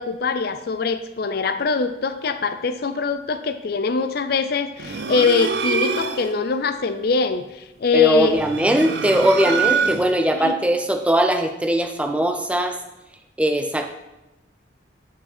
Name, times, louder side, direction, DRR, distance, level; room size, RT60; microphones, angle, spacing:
voice 1, 0.0-8.4 10.4-10.6, left 4 dB, 55° left, 10 dB, 0.5 m, -23 dB
sound 1, 4.8-6.4 8.2-10.3, right 5 dB, 60° right, 0.5 m, -25 dB
voice 2, 7.9-12.8 13.4-13.9, equal, 5° right, 5 dB, 0.5 m, -20 dB
10.0 x 4.8 x 4.3 m, 0.96 s
head